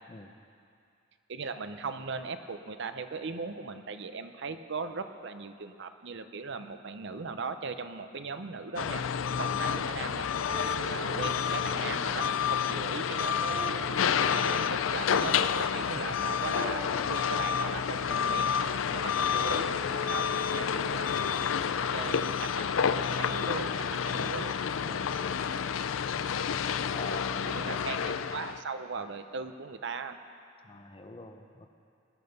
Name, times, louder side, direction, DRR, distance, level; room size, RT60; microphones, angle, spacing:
voice 1, 1.3-9.0 9.4-10.3 10.9-13.9 14.2-18.6 18.9-21.3 21.9-24.5 27.5-30.2, right 4 dB, 65° right, 9 dB, 0.7 m, -39 dB
sound 1, 8.8-28.6, left 7 dB, 85° left, 0.4 m, -29 dB
voice 2, 9.3-9.6 10.5-10.8 15.8-16.2 18.8-19.1 24.8-25.1 26.9-27.7 30.6-31.7, left 2 dB, 25° left, 6 dB, 0.8 m, -46 dB
sound 2, 10.5-12.1 13.5-15.1 16.5-18.2 19.5-21.9, right 2 dB, 40° right, 2.4 m, -45 dB
20.5 x 10.0 x 5.4 m, 2.4 s
head